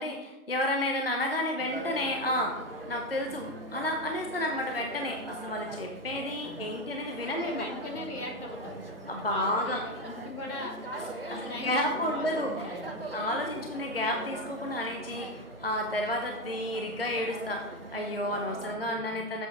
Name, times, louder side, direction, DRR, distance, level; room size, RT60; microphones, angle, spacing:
voice 1, 0.0-2.6 2.9-7.7 9.1-9.9 11.3-19.5, left 1 dB, 40° left, 2 dB, 0.7 m, -31 dB
sound 1, 1.6-18.8, right 2 dB, 40° right, 0.8 m, -41 dB
voice 2, 7.3-8.8 9.3-10.8 11.2-12.9 18.6-19.2, left 2 dB, 70° left, 0 dB, 2.7 m, -40 dB
7.6 x 6.2 x 4.8 m, 1.0 s
figure-of-eight pair, 170°, 47 cm